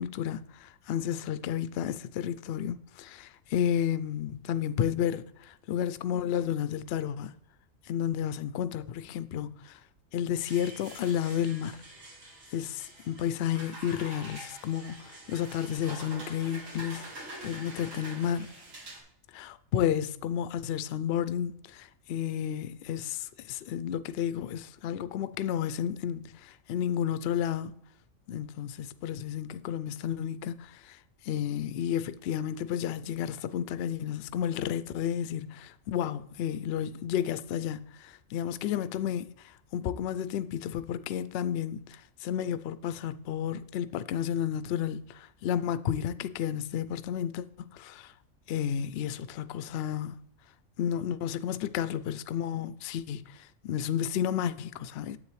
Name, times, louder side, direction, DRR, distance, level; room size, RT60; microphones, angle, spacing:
voice 1, 0.0-7.3 7.9-9.8 10.1-11.9 12.5-17.0 17.4-18.5 19.3-27.8 28.3-31.0 31.2-48.1 48.5-50.2 50.8-55.2, left 9 dB, 65° left, 0.6 m, -32 dB
sound 1, 10.4-19.0, right 1 dB, 70° right, 2.2 m, -46 dB
9.9 x 7.7 x 3.2 m
omnidirectional pair, 1.4 m